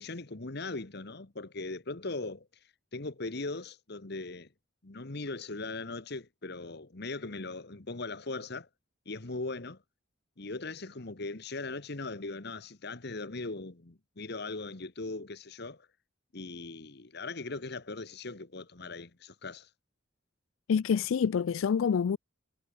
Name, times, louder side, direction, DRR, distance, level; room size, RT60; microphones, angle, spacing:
voice 1, 0.0-2.5 2.9-4.5 4.8-8.7 9.0-9.8 10.4-15.9 16.3-19.7, left 3 dB, 55° left, 1.4 m, -39 dB
voice 2, 20.7-22.2, left 6 dB, 85° left, 0.4 m, -27 dB
head